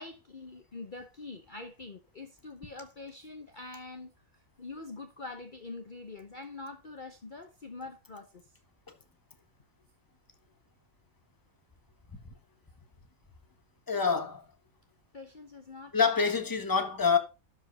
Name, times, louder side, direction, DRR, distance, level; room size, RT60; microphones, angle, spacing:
voice 1, 0.0-8.5 15.1-15.9, left 3 dB, 40° left, 1.1 m, -45 dB
voice 2, 13.9-14.4 15.9-17.2, left 5 dB, 15° left, 1.3 m, -26 dB
12.0 x 5.1 x 5.3 m
omnidirectional pair, 1.4 m